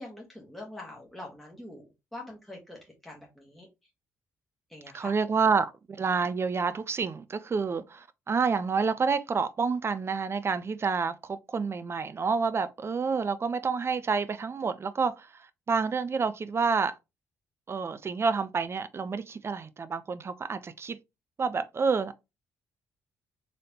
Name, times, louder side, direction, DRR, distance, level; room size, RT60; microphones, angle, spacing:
voice 1, 0.0-1.8 2.1-3.7 4.7-5.1, left 2 dB, 5° left, 1.5 m, -44 dB
voice 2, 4.9-16.9 17.7-21.0 21.4-22.2, right 5 dB, 35° right, 0.5 m, -29 dB
4.1 x 3.2 x 2.8 m
hypercardioid pair, 45°, 8 cm